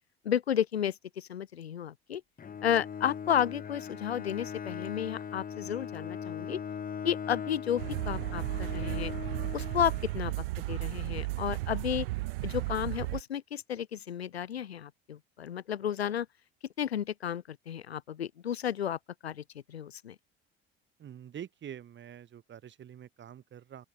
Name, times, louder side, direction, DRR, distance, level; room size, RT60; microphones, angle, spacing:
voice 1, 0.2-2.2 2.6-6.6 7.0-9.1 9.5-12.1 12.4-16.3 16.8-20.2, left 9 dB, 85° left, 0.7 m, -32 dB
Bowed string instrument, 2.4-10.6, left 7 dB, 30° left, 1.5 m, -40 dB
sound 1, 7.8-13.2, right 21 dB, 65° right, 1.2 m, -34 dB
voice 2, 21.0-23.9, right 9 dB, 35° right, 2.0 m, -46 dB
open air
figure-of-eight pair, 60°, 31 cm